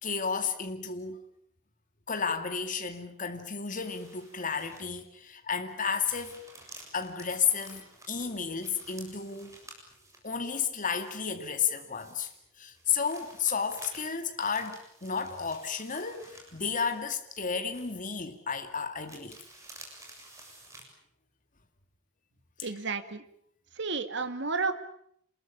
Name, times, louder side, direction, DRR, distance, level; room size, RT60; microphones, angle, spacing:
voice 1, 0.0-1.2 2.1-6.4 6.9-9.6 10.2-12.3 12.6-19.4 22.6-22.7, left 6 dB, 40° left, 2.4 m, -32 dB
sound 1, 3.7-5.2 5.6-10.3 10.8-12.4 12.7-17.4 17.7-18.3 19.1-20.8, right 2 dB, 15° right, 7.6 m, -52 dB
voice 2, 22.6-23.2 23.8-24.7, right 4 dB, 65° right, 2.1 m, -31 dB
28.0 x 21.5 x 8.8 m
head